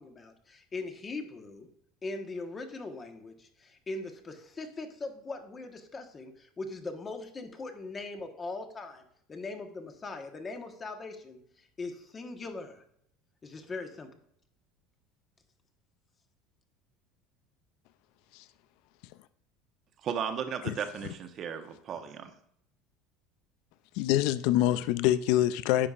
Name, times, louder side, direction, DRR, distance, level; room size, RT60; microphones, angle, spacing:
voice 1, 0.0-1.7 2.0-12.8 13.4-14.1, left 3 dB, 30° left, 1.1 m, -40 dB
voice 2, 20.0-22.3, right 7 dB, 45° right, 0.9 m, -35 dB
voice 3, 24.0-25.9, left 14 dB, 70° left, 0.3 m, -25 dB
9.8 x 5.2 x 2.4 m
supercardioid pair, 90°, 0 cm